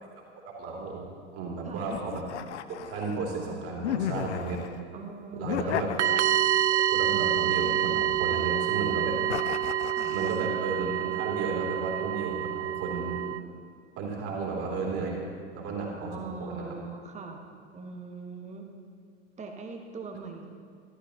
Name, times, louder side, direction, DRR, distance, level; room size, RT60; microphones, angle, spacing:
voice 1, 0.6-1.0 1.3-2.3 2.7-4.6 5.4-5.9 6.9-9.2 10.1-13.3 14.0-15.2 15.5-16.7, right 4 dB, 40° right, -2 dB, 3.2 m, -33 dB
sound 1, 1.9-3.2 3.8-4.8 5.4-6.6 7.3-8.4 9.3-10.5, left 10 dB, 70° left, 0.5 m, -35 dB
voice 2, 4.9-5.9 9.9-10.1 14.2-14.4 16.1-17.4 17.7-18.7 19.4-20.4, right 4 dB, 20° right, 3 dB, 1.4 m, -41 dB
sound 2, 6.0-13.4, right 11 dB, 70° right, 0.5 m, -27 dB
14.0 x 13.0 x 2.9 m, 2.3 s
figure-of-eight pair, 90°, 36 cm